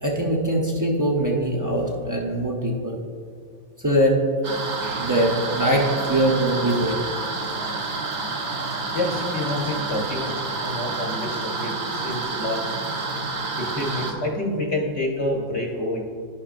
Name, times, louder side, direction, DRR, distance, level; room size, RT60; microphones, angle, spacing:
voice 1, 0.0-3.0 3.8-4.2 4.8-7.0, right 1 dB, 25° right, -2 dB, 0.4 m, -22 dB
sound 1, 4.4-14.1, right 3 dB, 50° right, 0.8 m, -29 dB
voice 2, 8.9-10.4 10.6-12.7 13.6-16.0, left 1 dB, 55° left, -2 dB, 1.0 m, -28 dB
10.5 x 5.7 x 2.5 m, 2.2 s
omnidirectional pair, 1.5 m